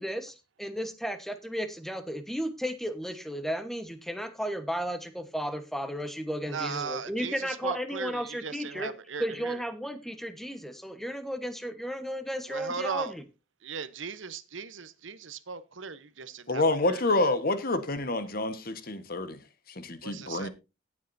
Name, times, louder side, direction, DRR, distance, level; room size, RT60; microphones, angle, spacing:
voice 1, 0.0-8.9 9.2-13.2, equal, ahead, 1.2 m, -34 dB
voice 2, 6.5-9.6 12.5-13.1 13.6-17.0 20.0-20.5, right 5 dB, 80° right, 1.0 m, -37 dB
voice 3, 16.5-19.4 19.7-20.5, left 2 dB, 50° left, 1.3 m, -28 dB
18.0 x 7.5 x 2.7 m
head